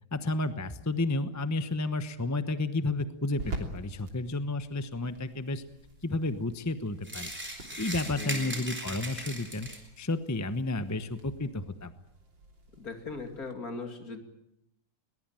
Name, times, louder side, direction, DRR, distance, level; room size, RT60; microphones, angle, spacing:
voice 1, 0.1-5.6 6.0-7.3 7.8-9.7 10.0-11.9, left 2 dB, 15° left, 11 dB, 0.7 m, -31 dB
sound 1, 1.3-13.5, right 2 dB, 80° right, 4.0 m, -48 dB
sound 2, 7.0-10.0, right 1 dB, 5° right, 4.0 m, -38 dB
voice 2, 8.1-8.6 12.7-14.2, left 3 dB, 50° left, 6 dB, 3.1 m, -39 dB
22.0 x 20.5 x 9.1 m, 0.80 s
omnidirectional pair, 2.0 m